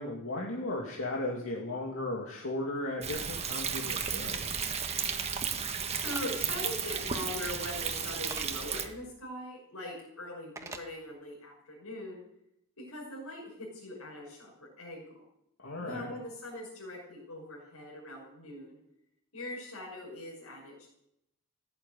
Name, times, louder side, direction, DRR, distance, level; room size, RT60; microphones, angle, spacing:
voice 1, 0.0-4.5 15.6-16.1, left 2 dB, 70° left, -2 dB, 2.4 m, -36 dB
Thunder, 3.0-8.9, right 6 dB, 30° right, 1.4 m, -34 dB
voice 2, 5.9-12.2 12.8-15.2 15.8-18.8 19.3-20.9, left 1 dB, 85° left, -3 dB, 6.1 m, -42 dB
sound 1, 6.0-6.2 8.3-8.5 10.6-10.9, right 3 dB, 15° right, 1.3 m, -41 dB
16.0 x 9.3 x 9.1 m, 0.80 s
head